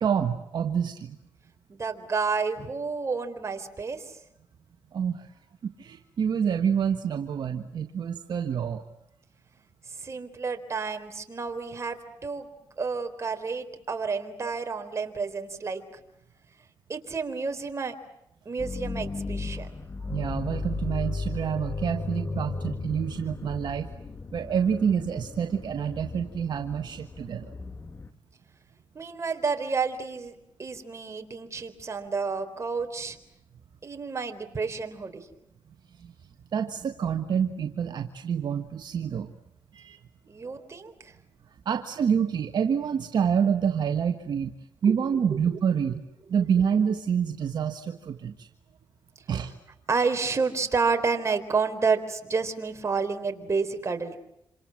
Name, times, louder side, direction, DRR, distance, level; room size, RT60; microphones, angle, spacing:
voice 1, 0.0-1.2 4.9-5.3 5.6-8.8 20.0-23.9 24.3-27.5 36.0-36.1 36.5-39.3 39.7-40.0 40.6-40.7 41.6-44.5 44.8-46.0 46.3-48.5 49.3-49.5, right 7 dB, 65° right, 6 dB, 1.5 m, -27 dB
voice 2, 1.7-4.1 10.0-12.5 12.8-16.0 16.9-18.0 18.5-19.7 28.9-30.3 30.6-33.2 33.8-35.3 40.3-41.1 49.9-54.2, right 4 dB, 35° right, 6 dB, 3.9 m, -30 dB
sound 1, 18.6-28.1, left 3 dB, 30° left, 1.5 m, -35 dB
27.5 x 26.5 x 7.7 m, 0.81 s
cardioid pair, 80°, 8 cm